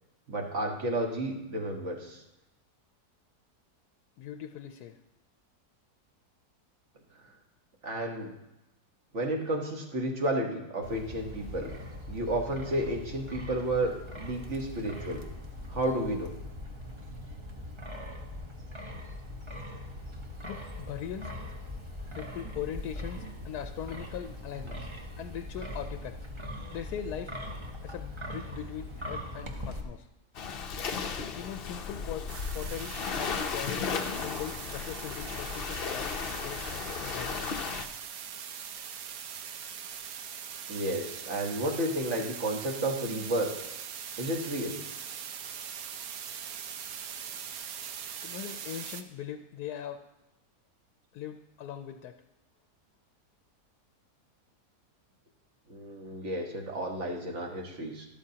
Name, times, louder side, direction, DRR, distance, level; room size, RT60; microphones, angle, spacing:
voice 1, 0.3-2.2 7.8-8.3 9.1-11.7 12.1-15.2 15.7-16.3 23.2-23.3 40.7-43.5 44.2-44.8 55.7-58.1, right 1 dB, 50° right, 2 dB, 1.6 m, -32 dB
voice 2, 4.2-5.0 20.4-21.3 22.1-24.9 25.2-26.3 26.7-27.4 27.8-30.1 31.3-37.3 48.2-50.0 51.1-52.2, left 9 dB, 75° left, 7 dB, 1.1 m, -40 dB
Wind, 10.8-29.8, left 1 dB, 20° right, 0.9 m, -41 dB
Waves surf, 30.3-37.9, left 6 dB, 50° left, 0.7 m, -35 dB
sound 1, 32.3-49.0, right 8 dB, 70° right, 1.1 m, -41 dB
12.5 x 12.0 x 2.8 m, 0.94 s
omnidirectional pair, 1.7 m